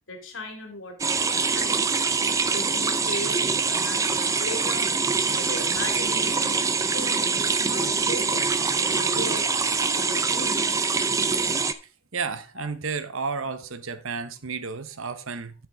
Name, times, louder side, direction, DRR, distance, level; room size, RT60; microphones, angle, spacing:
voice 1, 0.1-1.8 2.5-5.1 5.3-7.4 7.7-9.5 9.8-10.7, left 1 dB, 70° left, 2.2 m, -37 dB
sound 1, 1.0-11.7, right 4 dB, 15° right, 0.3 m, -24 dB
voice 2, 12.1-15.5, right 5 dB, 80° right, 0.8 m, -32 dB
10.0 x 6.4 x 3.4 m
head